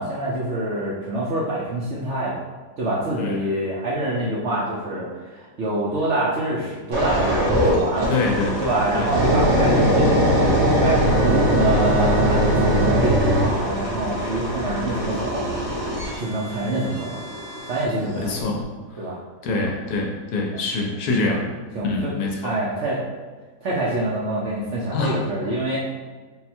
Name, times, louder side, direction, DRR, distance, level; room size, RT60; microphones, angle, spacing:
voice 1, 0.0-2.4 2.8-8.1 8.6-10.4 10.8-15.6 16.2-17.3 17.7-18.5 19.0-19.2 19.6-19.7 20.5-20.6 21.3-21.4 21.7-22.1 22.4-23.0 23.6-25.8, right 1 dB, 60° right, -6 dB, 0.7 m, -26 dB
sound 1, 6.9-17.9 18.4-18.6, equal, 90° right, 1.5 m, -21 dB
voice 2, 8.1-9.1 18.2-19.1 19.4-21.5 21.8-22.6 24.9-25.2, left 3 dB, 70° left, 0 dB, 1.1 m, -25 dB
3.8 x 2.2 x 4.3 m, 1.4 s
omnidirectional pair, 1.8 m